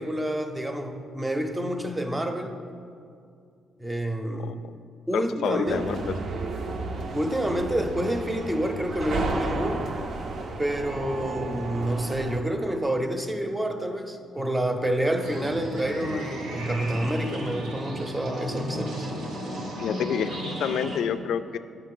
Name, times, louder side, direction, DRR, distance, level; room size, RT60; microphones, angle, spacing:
voice 1, 0.0-2.5 3.8-4.6 5.1-6.0 7.1-9.9 10.6-19.1, right 1 dB, 15° right, 6 dB, 0.7 m, -28 dB
voice 2, 5.1-6.0 19.8-21.6, left 8 dB, 75° left, 10 dB, 0.3 m, -28 dB
sound 1, 5.7-12.4, right 3 dB, 55° right, 0.6 m, -33 dB
sound 2, 15.2-21.0, right 1 dB, 80° right, 1.2 m, -35 dB
8.9 x 5.9 x 3.8 m, 2.3 s
cardioid pair, 90°, 0 cm